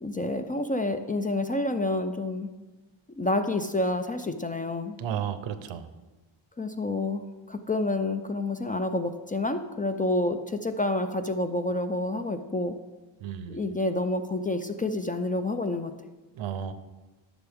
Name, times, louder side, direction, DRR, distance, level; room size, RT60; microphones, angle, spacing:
voice 1, 0.0-2.5 3.2-5.0 6.6-12.7 13.5-15.9, left 2 dB, 20° left, 8 dB, 0.3 m, -28 dB
voice 2, 5.0-5.9 13.2-13.6 16.3-16.7, right 9 dB, 80° right, 12 dB, 0.8 m, -33 dB
11.0 x 6.8 x 3.5 m, 1.2 s
cardioid pair, 120°, 46 cm